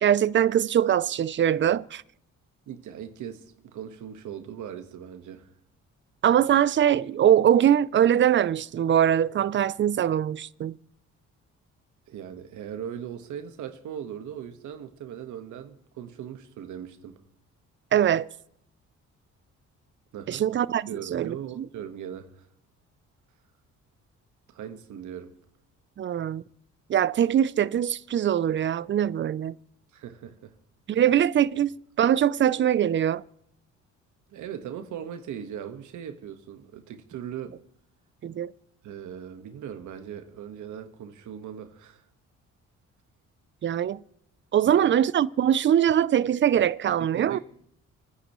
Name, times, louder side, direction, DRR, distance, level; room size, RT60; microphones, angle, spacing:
voice 1, 0.0-2.0 6.2-10.8 17.9-18.3 20.3-21.7 26.0-26.4 26.9-29.6 30.9-31.7 32.0-33.2 38.2-38.5 43.6-44.0 44.5-47.4, right 10 dB, 40° right, 0.5 m, -22 dB
voice 2, 2.7-5.5 12.1-17.2 20.1-20.4 20.9-22.5 24.5-25.4 29.9-30.6 31.5-31.6 34.3-37.6 38.8-42.0 44.6-44.8 47.0-47.4, right 9 dB, 75° right, 1.5 m, -39 dB
29.5 x 10.0 x 3.1 m
cardioid pair, 90°, 30 cm